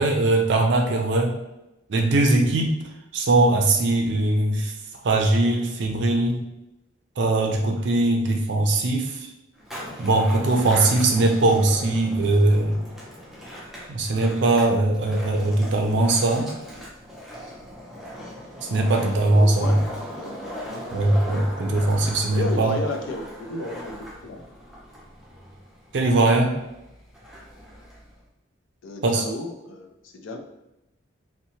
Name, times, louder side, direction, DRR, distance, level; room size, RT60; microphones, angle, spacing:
voice 1, 0.0-1.4 1.9-2.8 3.1-4.7 5.0-6.4 7.2-9.3 10.0-12.8 13.9-16.5 18.7-19.8 20.9-22.8 25.9-26.6 29.0-29.2, right 2 dB, 65° right, 3 dB, 0.4 m, -20 dB
Skateboard, 9.5-28.2, equal, ahead, 0.5 m, -39 dB
voice 2, 19.4-19.9 20.1-20.4 22.3-24.4 28.8-30.4, left 2 dB, 85° left, 3 dB, 0.4 m, -33 dB
2.7 x 2.1 x 2.8 m, 0.91 s
head